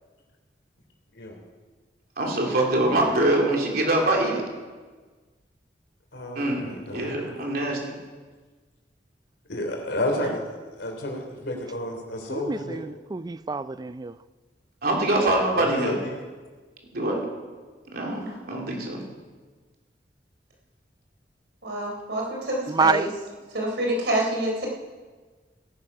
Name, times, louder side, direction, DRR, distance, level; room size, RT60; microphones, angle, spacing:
voice 1, 2.2-4.4 6.3-7.8 14.8-16.0 16.9-17.2 17.9-19.0, right 1 dB, 60° right, 3.0 m, -24 dB
voice 2, 6.1-7.1 9.5-12.8 15.5-16.1, left 1 dB, 80° left, 3.3 m, -31 dB
voice 3, 12.3-14.1 22.7-23.1, right 4 dB, 25° right, 0.4 m, -26 dB
voice 4, 21.6-23.1 23.5-24.7, right 1 dB, 80° right, 3.8 m, -27 dB
17.0 x 10.0 x 5.5 m
head